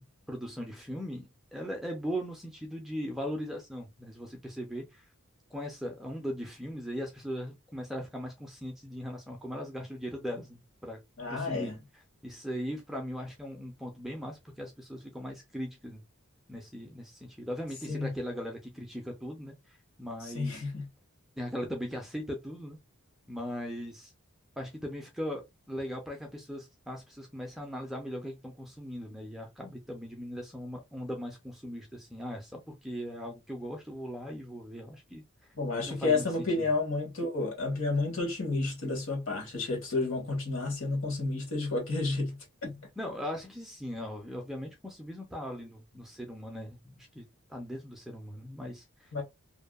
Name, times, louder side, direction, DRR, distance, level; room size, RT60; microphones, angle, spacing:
voice 1, 0.0-5.0 5.5-11.0 11.3-11.7 12.2-16.0 16.5-19.5 20.0-20.6 21.4-22.8 23.3-24.1 24.6-35.2 35.8-36.2 36.6-36.7 43.0-49.1, equal, ahead, 0.4 m, -39 dB
voice 2, 11.2-11.8 17.9-18.1 20.2-20.9 35.6-42.7 49.1-49.2, left 3 dB, 65° left, 1.2 m, -31 dB
2.6 x 2.1 x 2.2 m
head